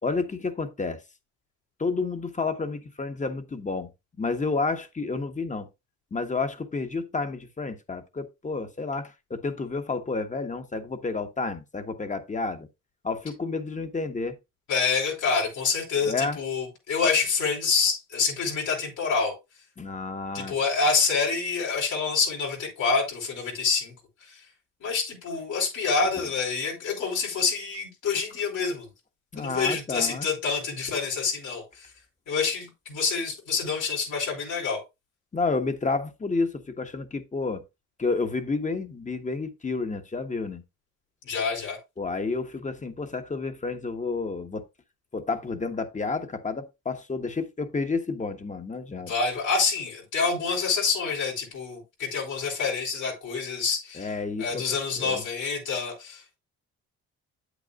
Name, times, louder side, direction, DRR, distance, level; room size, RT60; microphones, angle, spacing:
voice 1, 0.0-1.0 1.8-3.9 4.2-5.7 6.1-12.7 13.0-14.4 16.0-16.4 19.8-20.5 29.3-30.3 35.3-37.6 38.0-40.6 42.0-44.6 45.1-49.1 54.0-54.6 55.0-55.2, left 4 dB, 25° left, 1.2 m, -30 dB
voice 2, 14.7-19.3 20.3-23.9 24.2-24.4 24.8-28.9 29.4-31.9 32.3-34.8 41.2-41.8 49.1-54.1 54.4-56.4, left 5 dB, 75° left, 4.7 m, -27 dB
8.4 x 8.2 x 2.5 m
cardioid pair, 90°, 30 cm